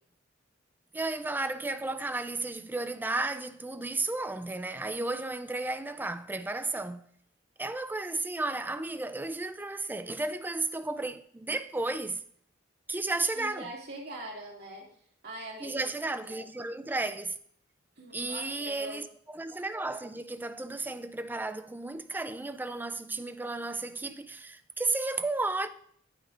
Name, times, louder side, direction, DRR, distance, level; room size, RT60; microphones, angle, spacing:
voice 1, 0.9-7.1 7.6-12.2 12.9-13.7 15.6-17.4 18.1-25.7, right 2 dB, 10° right, 0.4 m, -33 dB
voice 2, 13.3-14.9 15.2-15.8 16.1-16.4 18.0-19.0, right 1 dB, 55° right, 2.3 m, -43 dB
11.0 x 9.6 x 2.5 m
head